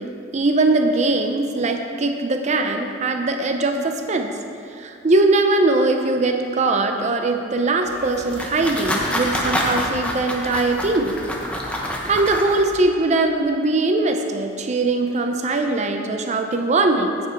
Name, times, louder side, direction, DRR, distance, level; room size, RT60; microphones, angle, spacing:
voice 1, 0.0-4.4 4.7-11.2 11.8-17.2, right 2 dB, 40° right, 5 dB, 0.5 m, -21 dB
sound 1, 7.9-12.8, equal, 5° left, 0.9 m, -27 dB
9.0 x 7.2 x 4.6 m, 2.5 s
head